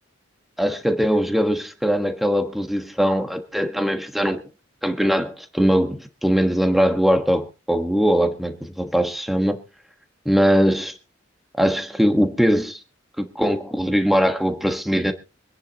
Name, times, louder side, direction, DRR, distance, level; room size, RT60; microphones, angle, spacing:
voice 1, 0.6-4.4 4.8-9.6 10.2-10.9 11.6-12.8 13.2-15.1, equal, ahead, 1.3 m, -21 dB
25.0 x 10.0 x 2.9 m
head